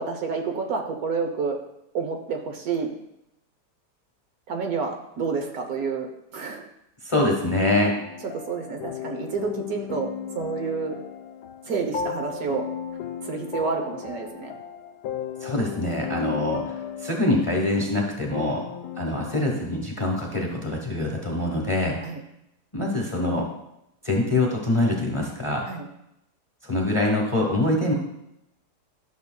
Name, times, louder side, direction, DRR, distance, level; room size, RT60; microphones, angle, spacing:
voice 1, 0.0-1.6 1.9-2.9 4.5-6.1 6.3-6.7 8.2-10.1 10.3-10.9 11.6-12.6 13.2-14.5 18.4-18.7 22.0-22.2 25.7-25.9, right 5 dB, 65° right, 3 dB, 1.3 m, -29 dB
voice 2, 7.0-7.9 15.4-18.6 19.0-22.0 22.7-23.5 24.0-25.7 26.6-27.9, left 2 dB, 20° left, -1 dB, 1.0 m, -24 dB
sound 1, 7.9-19.4, left 7 dB, 80° left, 1.2 m, -35 dB
12.0 x 6.6 x 2.2 m, 0.84 s
omnidirectional pair, 1.8 m